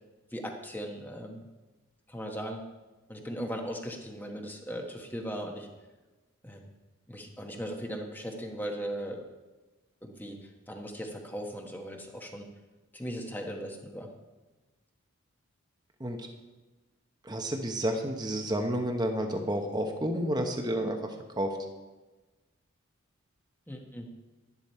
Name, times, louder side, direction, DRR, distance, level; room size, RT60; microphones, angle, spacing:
voice 1, 0.3-1.4 2.1-2.6 3.1-5.7 6.4-6.7 7.1-9.2 10.0-10.4 10.7-12.5 12.9-14.1 23.7-24.1, equal, 10° left, 2 dB, 1.2 m, -38 dB
voice 2, 17.2-21.0 21.4-21.5, right 1 dB, 20° right, 3 dB, 1.0 m, -30 dB
11.5 x 11.0 x 4.4 m, 1.2 s
head